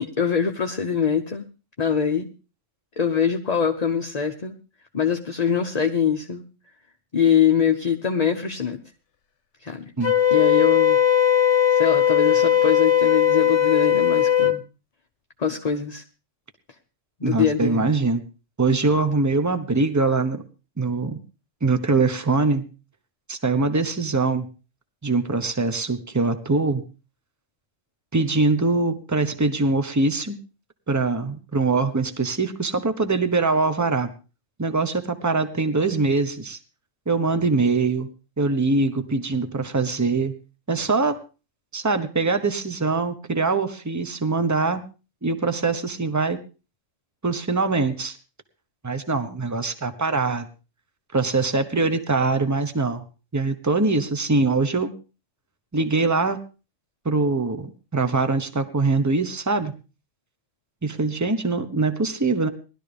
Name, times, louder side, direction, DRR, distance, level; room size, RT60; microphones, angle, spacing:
voice 1, 0.0-1.5 1.8-2.3 3.0-4.5 4.9-6.4 7.1-8.8 9.6-9.8 10.3-11.0 11.7-14.6 15.4-16.0 17.2-17.9, left 7 dB, 35° left, 4 dB, 0.9 m, -23 dB
Wind instrument woodwind instrument, 10.0-14.6, left 9 dB, 65° left, 1.2 m, -18 dB
voice 2, 17.2-18.2 18.6-20.4 20.8-21.2 21.6-22.6 23.3-24.5 25.0-26.8 28.1-30.4 30.9-34.1 34.6-36.6 37.1-38.1 38.4-40.3 40.7-41.2 41.7-44.8 45.2-46.4 47.2-48.2 48.8-50.5 51.1-53.0 53.3-54.9 55.7-56.4 57.0-59.7 60.8-62.5, right 3 dB, 15° right, 8 dB, 1.0 m, -23 dB
19.0 x 12.5 x 3.5 m, 0.33 s
omnidirectional pair, 1.3 m